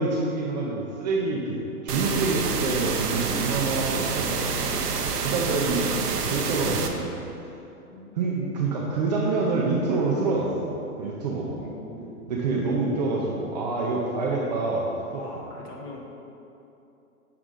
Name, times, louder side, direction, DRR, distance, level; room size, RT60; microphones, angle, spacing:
voice 1, 0.0-1.6 1.8-4.6 5.2-7.4 8.2-11.6 12.3-15.2, right 3 dB, 30° right, -3 dB, 0.5 m, -27 dB
sound 1, 1.9-6.9, right 5 dB, 90° right, 0.8 m, -28 dB
voice 2, 5.3-5.7 7.9-8.4 11.6-12.2 15.2-16.0, left 1 dB, 35° left, -1 dB, 1.1 m, -43 dB
6.9 x 4.7 x 3.7 m, 2.9 s
hypercardioid pair, 135°, 45 cm